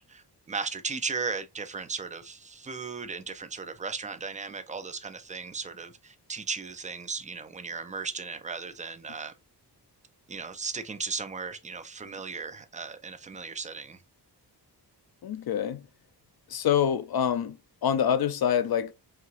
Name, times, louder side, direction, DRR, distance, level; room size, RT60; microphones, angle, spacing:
voice 1, 0.1-9.3 10.3-14.0, right 4 dB, 20° right, 0.4 m, -36 dB
voice 2, 15.2-15.8 16.5-17.6 17.8-18.9, left 9 dB, 60° left, 0.5 m, -26 dB
4.3 x 2.9 x 2.3 m
wide cardioid pair, 140°, 41 cm